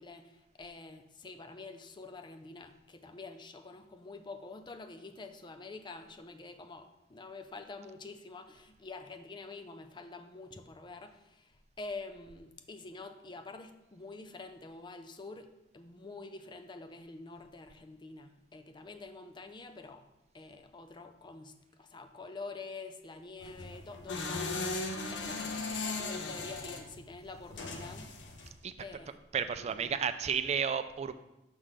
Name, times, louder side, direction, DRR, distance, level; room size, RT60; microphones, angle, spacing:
voice 1, 0.0-20.1 20.3-21.5 21.8-28.1 28.8-29.2 29.6-30.0, left 3 dB, 25° left, 7 dB, 0.4 m, -47 dB
sound 1, 23.4-28.5, left 3 dB, 80° left, 0.7 m, -38 dB
voice 2, 29.3-31.1, right 7 dB, 35° right, 11 dB, 0.3 m, -32 dB
6.2 x 3.3 x 5.7 m, 0.95 s
head